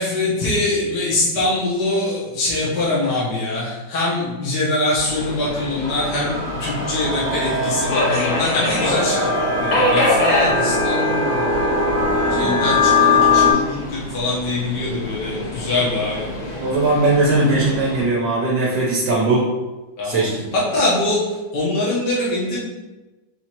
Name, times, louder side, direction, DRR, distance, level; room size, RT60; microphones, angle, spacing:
voice 1, 0.0-6.3 6.6-11.5 12.3-16.3 20.0-20.2 20.5-21.2 21.5-22.6, left 2 dB, 65° left, -7 dB, 1.6 m, -23 dB
Subway metro underground, 5.0-18.0, left 1 dB, 80° left, 1.9 m, -26 dB
sound 1, 5.8-13.5, left 3 dB, 45° right, 1.4 m, -20 dB
voice 2, 12.1-12.7 16.6-19.5 20.0-20.5, right 2 dB, 65° right, -4 dB, 1.3 m, -20 dB
4.4 x 2.8 x 4.3 m, 1.1 s
omnidirectional pair, 2.1 m